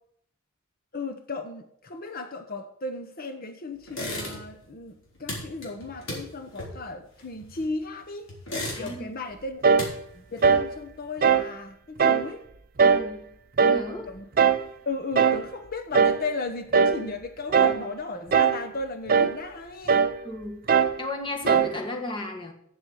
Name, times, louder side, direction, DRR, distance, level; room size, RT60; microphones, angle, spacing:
voice 1, 0.9-8.3 8.8-9.6 10.1-12.4 14.1-14.2 14.8-20.0, left 3 dB, 50° left, 1.0 m, -35 dB
sound 1, 3.9-4.7 4.9-7.9 8.3-9.2 9.5-10.9, left 1 dB, 75° left, 3.9 m, -36 dB
voice 2, 8.7-9.1 12.8-14.1 20.2-22.5, left 1 dB, 25° left, 1.6 m, -35 dB
sound 2, 9.6-9.9 10.4-10.7 11.2-11.5 12.0-12.3 12.8-13.1 13.6-13.9 14.4-14.7 15.2-15.5 15.9-16.3 16.7-17.0 17.5-17.9 18.3-18.7 19.1-19.4 19.9-20.2 20.7-21.0 21.5-21.8, right 6 dB, 45° right, 0.6 m, -20 dB
7.8 x 7.4 x 8.0 m
head